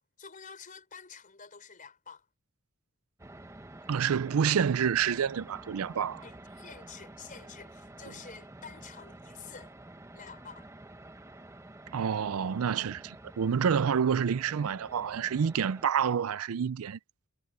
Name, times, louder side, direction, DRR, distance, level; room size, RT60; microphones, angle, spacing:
voice 1, 0.0-2.3 6.2-9.7 10.1-10.7, left 6 dB, 40° left, 4.2 m, -49 dB
sound 1, 3.2-15.8, right 1 dB, 15° right, 0.9 m, -49 dB
voice 2, 3.9-6.2 8.1-8.2 11.9-17.0, right 7 dB, 85° right, 0.4 m, -28 dB
head